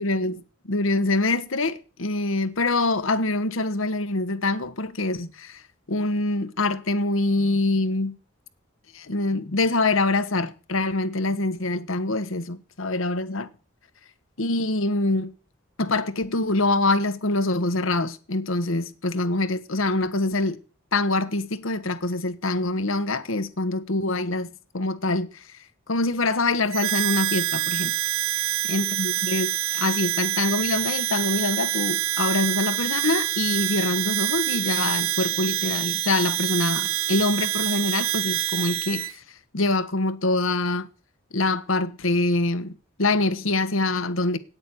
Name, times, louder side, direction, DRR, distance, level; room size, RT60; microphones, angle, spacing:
voice 1, 0.0-5.6 5.9-8.2 8.9-13.5 14.4-15.3 15.8-20.6 20.9-25.6 25.9-27.9 28.3-28.4 28.7-40.9 41.3-44.4, left 2 dB, 70° left, 1.2 m, -25 dB
Harmonica, 26.7-39.1, right 13 dB, 85° right, 0.6 m, -26 dB
9.4 x 8.8 x 8.4 m
head